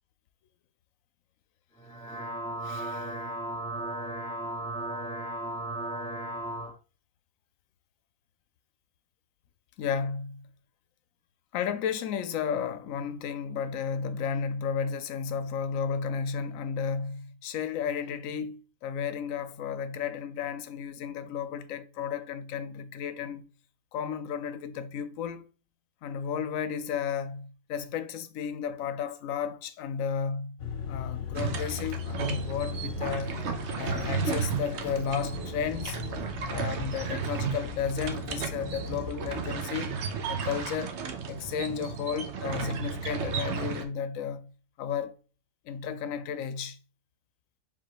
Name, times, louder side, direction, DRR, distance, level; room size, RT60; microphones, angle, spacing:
sound 1, 1.8-6.7, right 1 dB, 5° left, 0.7 m, -35 dB
voice 1, 2.6-3.2 9.8-10.5 11.5-23.4 23.9-25.5 26.0-30.6 30.8-33.4 33.8-36.0 36.4-39.9 40.3-41.0 41.3-44.5 44.8-45.2 45.6-46.8, left 7 dB, 85° left, 1.0 m, -33 dB
sound 2, 30.6-39.5, left 6 dB, 70° left, 1.1 m, -39 dB
sound 3, 31.3-43.8, right 6 dB, 65° right, 0.9 m, -34 dB
4.7 x 3.8 x 2.9 m
omnidirectional pair, 1.4 m